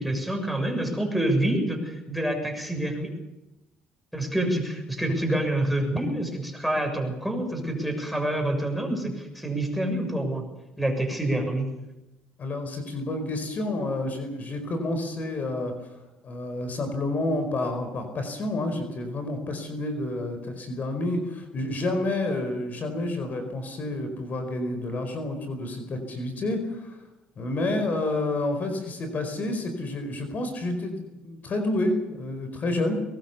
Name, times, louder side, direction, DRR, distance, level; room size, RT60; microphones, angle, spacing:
voice 1, 0.0-3.1 4.1-10.4 10.8-11.7, right 1 dB, ahead, 5 dB, 6.8 m, -27 dB
voice 2, 12.4-15.7 16.2-26.9 27.4-32.9, left 2 dB, 45° left, 7 dB, 4.7 m, -29 dB
22.0 x 20.0 x 7.0 m, 0.99 s
cardioid pair, 90°, 4 cm